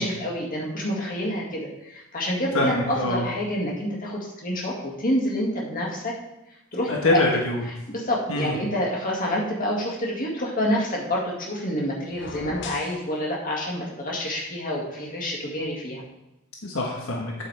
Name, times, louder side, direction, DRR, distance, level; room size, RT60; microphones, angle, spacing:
voice 1, 0.0-6.1 6.7-7.2 7.9-16.0, equal, 40° left, -3 dB, 2.1 m, -28 dB
voice 2, 2.5-3.3 6.9-7.6 8.3-8.6 16.6-17.3, left 1 dB, 75° left, -1 dB, 1.4 m, -24 dB
sound 1, 12.1-13.0, left 3 dB, 60° left, 0.8 m, -37 dB
8.5 x 8.5 x 3.4 m, 0.93 s
head